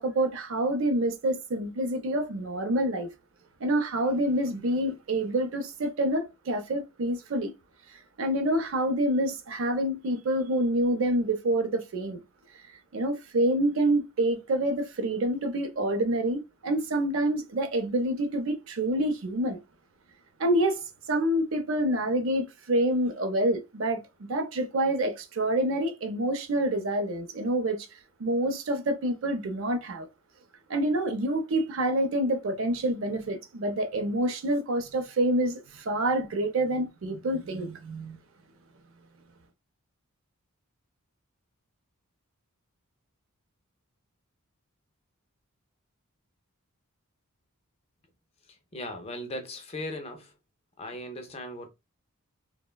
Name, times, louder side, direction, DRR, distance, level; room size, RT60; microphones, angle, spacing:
voice 1, 0.0-3.1 3.6-7.5 7.9-12.2 12.5-12.6 12.9-19.6 20.4-27.9 28.2-30.1 30.7-38.2, right 1 dB, 60° right, 0.5 m, -27 dB
voice 2, 48.7-50.3 50.8-51.7, left 1 dB, 25° left, 0.4 m, -37 dB
3.0 x 2.1 x 2.2 m
head